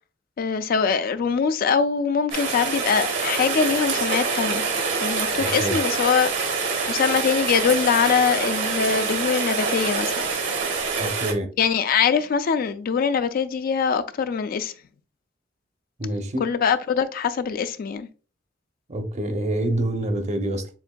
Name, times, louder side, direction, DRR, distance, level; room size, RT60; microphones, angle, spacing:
voice 1, 0.4-4.6 5.0-6.3 6.9-10.2 11.6-14.7 16.4-18.1, left 6 dB, 50° left, 0.3 m, -23 dB
Rain, 2.3-11.3, right 4 dB, 70° right, 1.1 m, -26 dB
voice 2, 5.4-5.8 11.0-11.5 16.0-16.5 18.9-20.7, right 1 dB, 35° right, 0.7 m, -26 dB
7.0 x 2.6 x 2.2 m
head